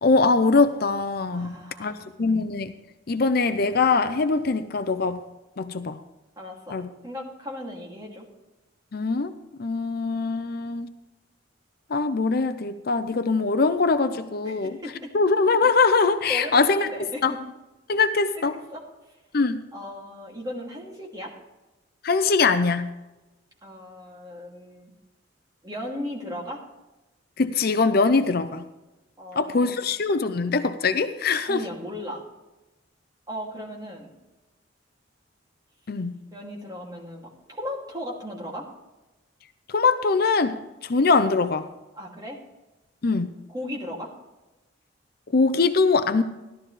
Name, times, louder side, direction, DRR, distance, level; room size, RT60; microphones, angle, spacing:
voice 1, 0.0-1.9 2.2-2.7 3.1-5.2 5.6-6.0 6.7-6.9 8.9-9.3 9.6-10.9 11.9-14.8 15.1-16.9 17.2-17.3 17.9-18.6 19.3-19.6 22.0-22.9 27.4-28.6 29.4-31.6 35.9-36.2 39.7-40.6 40.8-41.7 43.0-43.3 45.3-46.2, left 4 dB, 55° left, 10 dB, 0.6 m, -22 dB
voice 2, 1.3-2.1 6.4-6.8 7.0-8.2 14.4-15.1 16.3-17.4 18.4-18.8 19.7-21.3 23.6-24.9 25.6-26.6 29.2-29.8 31.4-32.2 33.3-34.1 36.3-38.7 41.9-42.4 43.5-44.1, left 1 dB, 20° right, -2 dB, 2.5 m, -36 dB
14.5 x 12.0 x 3.3 m, 1.0 s
head